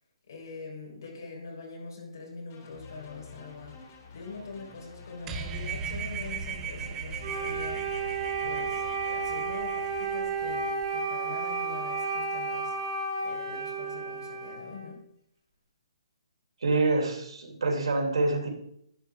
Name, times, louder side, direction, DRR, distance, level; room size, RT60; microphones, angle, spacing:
voice 1, 0.3-8.1 8.4-8.8 9.1-12.7 13.2-15.0, left 3 dB, 40° left, -2 dB, 3.8 m, -43 dB
sound 1, 2.5-9.4, left 5 dB, 25° left, 3.2 m, -50 dB
sound 2, 5.3-10.9, right 5 dB, 10° right, 0.6 m, -38 dB
Wind instrument woodwind instrument, 7.2-14.9, right 4 dB, 50° right, 2.7 m, -32 dB
voice 2, 16.6-18.5, right 2 dB, 70° right, 0 dB, 3.1 m, -26 dB
11.5 x 9.5 x 3.5 m, 0.72 s
hypercardioid pair, 175°, 3 cm